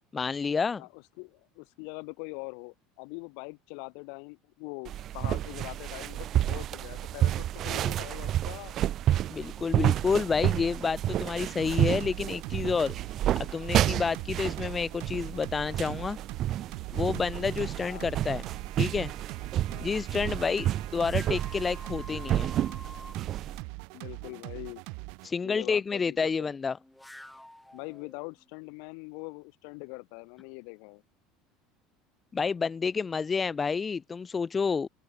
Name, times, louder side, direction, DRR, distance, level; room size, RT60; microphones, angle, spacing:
voice 1, 0.1-0.8 9.3-12.9 13.4-16.2 16.9-18.4 18.8-19.1 19.8-22.5 25.2-26.8 32.3-34.9, left 5 dB, 20° left, 0.5 m, -29 dB
voice 2, 0.8-8.8 14.0-14.2 17.8-18.1 19.7-19.9 23.9-24.8 25.4-26.5 27.7-31.0, left 40 dB or more, 75° left, 5.5 m, -43 dB
sound 1, 4.9-23.6, right 12 dB, 45° right, 0.5 m, -30 dB
sound 2, 11.6-25.3, right 35 dB, 70° right, 1.9 m, -42 dB
sound 3, 20.9-23.2 26.7-28.4, left 1 dB, 5° left, 3.5 m, -48 dB
open air
supercardioid pair, 135°, 0 cm